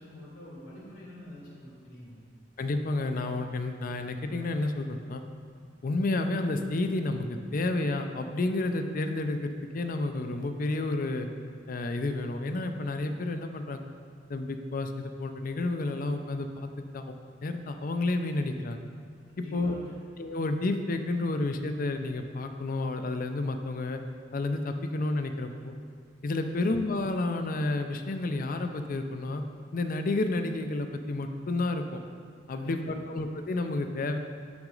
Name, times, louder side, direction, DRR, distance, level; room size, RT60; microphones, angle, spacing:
voice 1, 0.0-2.2 19.3-20.0 26.5-26.7 32.5-33.0, left 1 dB, 80° left, -5 dB, 1.7 m, -46 dB
voice 2, 2.6-5.2 5.8-11.3 11.7-13.8 14.3-16.7 16.9-18.8 19.5-19.8 20.2-24.0 24.3-25.7 26.2-29.4 29.7-32.0 32.5-34.2, left 2 dB, 50° left, 7 dB, 0.5 m, -30 dB
7.4 x 5.9 x 3.9 m, 2.1 s
head